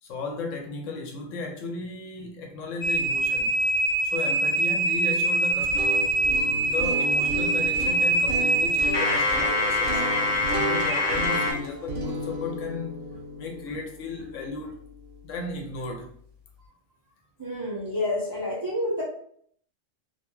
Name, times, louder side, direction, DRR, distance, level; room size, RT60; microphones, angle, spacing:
voice 1, 0.0-3.6 4.0-6.1 6.6-14.8 15.2-16.1, left 3 dB, 80° left, 1.0 m, -35 dB
sound 1, 2.8-11.5, right 1 dB, 50° left, 0.8 m, -24 dB
sound 2, 5.5-15.5, equal, 60° right, 0.7 m, -34 dB
voice 2, 17.4-19.0, left 1 dB, 25° right, 0.5 m, -29 dB
2.5 x 2.2 x 2.9 m
omnidirectional pair, 1.3 m